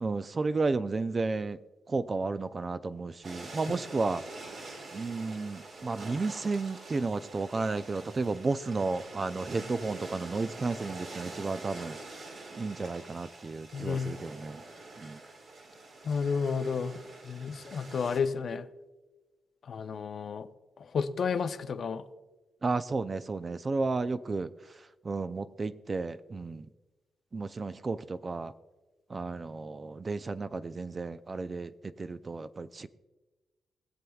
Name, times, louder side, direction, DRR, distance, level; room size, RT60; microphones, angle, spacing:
voice 1, 0.0-1.6 1.9-4.3 4.9-14.6 15.0-15.2 22.6-26.7 27.3-28.5 29.1-32.9, right 3 dB, 35° right, 12 dB, 0.4 m, -33 dB
sound 1, 3.2-18.2, right 2 dB, 65° right, 2.3 m, -45 dB
voice 2, 13.7-14.1 16.0-17.0 17.2-18.7 19.7-20.5 20.9-22.0, left 5 dB, 60° left, 9 dB, 0.6 m, -31 dB
21.0 x 7.7 x 2.3 m, 1.2 s
cardioid pair, 85°, 0 cm